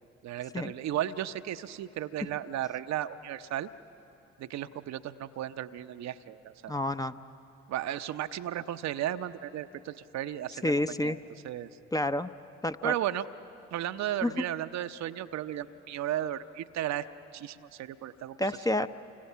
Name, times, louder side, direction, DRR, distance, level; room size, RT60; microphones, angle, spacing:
voice 1, 0.2-3.7 4.4-6.8 7.7-11.2 11.4-11.7 12.8-13.2 13.7-17.1 17.3-18.4 18.8-18.9, right 12 dB, 55° right, 10 dB, 0.7 m, -34 dB
voice 2, 6.7-7.1 10.6-11.2 11.9-12.3 12.6-12.9 14.2-14.3 18.4-18.9, left 1 dB, 10° left, 10 dB, 0.7 m, -29 dB
29.5 x 25.0 x 5.7 m, 2.9 s
hypercardioid pair, 45°, 32 cm